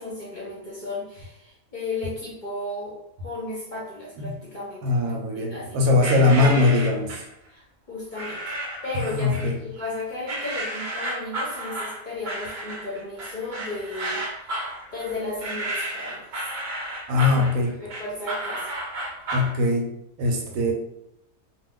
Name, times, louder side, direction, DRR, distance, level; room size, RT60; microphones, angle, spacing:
voice 1, 0.0-6.8 7.5-8.6 8.8-14.5 14.9-16.4 17.3-17.4 17.8-18.7, left 2 dB, 45° left, -6 dB, 0.6 m, -34 dB
voice 2, 4.8-7.1 8.9-9.6 17.1-17.8 19.3-20.7, left 3 dB, 80° right, 1 dB, 1.0 m, -21 dB
sound 1, 6.0-7.3 8.1-8.9 9.3-9.9 10.3-19.5, right 1 dB, 60° right, 0.5 m, -32 dB
2.4 x 2.3 x 3.5 m, 0.81 s
omnidirectional pair, 1.5 m